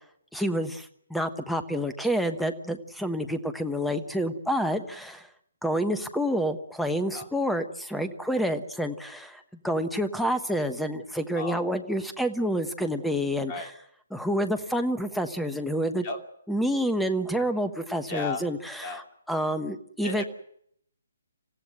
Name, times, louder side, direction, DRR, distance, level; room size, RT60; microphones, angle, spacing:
voice 1, 0.3-5.3 5.6-13.6 14.1-16.0 16.5-19.0 19.3-20.2, equal, ahead, 10 dB, 1.2 m, -28 dB
voice 2, 18.1-18.4 18.8-19.0 20.0-20.2, left 3 dB, 25° left, 4 dB, 2.8 m, -34 dB
27.5 x 15.5 x 7.9 m, 0.69 s
figure-of-eight pair, 135°, 0 cm